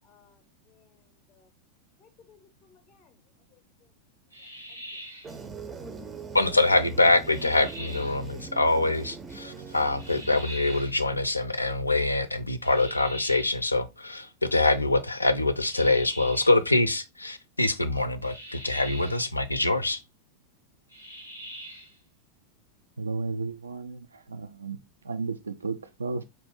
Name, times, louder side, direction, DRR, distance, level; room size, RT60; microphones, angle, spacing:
voice 1, 0.0-0.4 0.7-1.0 1.3-1.5 2.0-3.1 3.5-3.6, left 7 dB, 30° left, 0.6 m, -60 dB
sound 1, 4.3-5.4 7.2-8.2 10.0-11.0 12.6-13.7 15.6-16.6 18.2-19.3 20.9-22.0, equal, 90° right, 0.9 m, -43 dB
sound 2, 5.2-10.8, right 5 dB, 20° right, 0.5 m, -42 dB
voice 2, 6.3-20.0, left 2 dB, 85° left, 0.4 m, -24 dB
voice 3, 23.0-26.2, right 4 dB, 75° right, 0.3 m, -34 dB
4.3 x 2.5 x 3.4 m
figure-of-eight pair, 90°, 0 cm